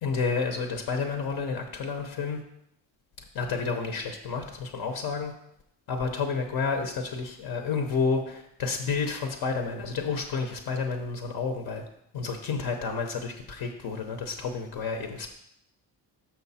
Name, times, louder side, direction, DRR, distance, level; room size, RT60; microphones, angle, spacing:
voice 1, 0.0-2.4 3.3-5.3 5.9-11.8 12.1-15.3, left 5 dB, 65° left, 4 dB, 0.9 m, -30 dB
6.4 x 5.9 x 4.2 m, 0.76 s
cardioid pair, 140°, 41 cm